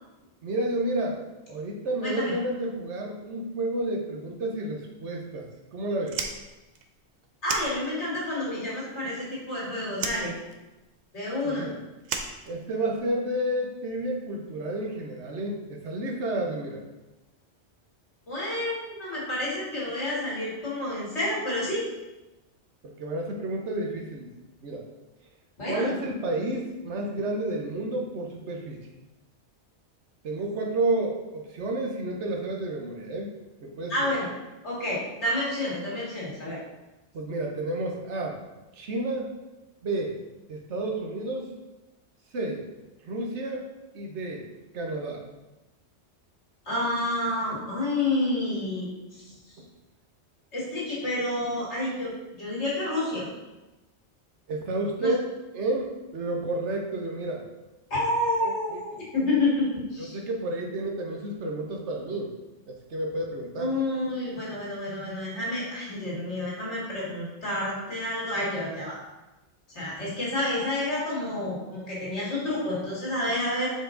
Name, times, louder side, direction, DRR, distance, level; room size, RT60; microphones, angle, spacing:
voice 1, 0.4-1.2 1.5-6.2 11.4-11.8 12.5-16.8 22.8-24.3 24.6-24.9 25.6-28.8 30.2-33.3 33.6-34.1 37.1-38.4 38.7-39.3 39.8-40.2 40.5-41.5 42.3-42.7 43.0-43.7 43.9-44.5 44.7-45.2 49.6-49.7 54.5-55.2 55.5-57.4 58.4-59.0 60.0-62.3 62.7-63.7, right 2 dB, 90° right, 1 dB, 1.2 m, -31 dB
voice 2, 2.0-2.3 7.4-10.3 11.1-11.7 18.3-21.9 25.6-25.9 33.9-34.3 34.6-36.6 46.7-49.2 50.5-52.1 52.4-53.2 55.0-55.1 57.9-60.2 63.6-69.0 69.7-73.7, left 1 dB, 80° left, -6 dB, 2.4 m, -29 dB
Fire, 6.0-8.3 8.6-9.6 9.9-13.1, right 5 dB, 50° right, 0.6 m, -36 dB
5.2 x 4.8 x 3.8 m, 1.1 s
omnidirectional pair, 1.2 m